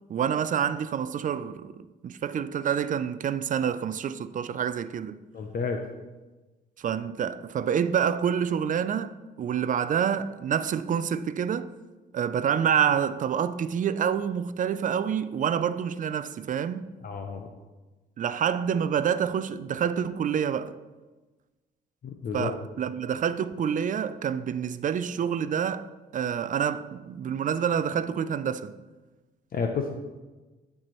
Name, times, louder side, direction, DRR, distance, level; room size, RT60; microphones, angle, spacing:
voice 1, 0.1-5.2 6.8-11.7 12.1-16.9 18.2-20.7 22.3-25.9 26.1-28.7, right 8 dB, 40° right, 0.4 m, -27 dB
voice 2, 5.3-5.8 17.0-17.5 22.0-22.5 29.5-29.9, left 5 dB, 45° left, 0.6 m, -30 dB
10.0 x 4.6 x 3.1 m
cardioid pair, 90°, 20 cm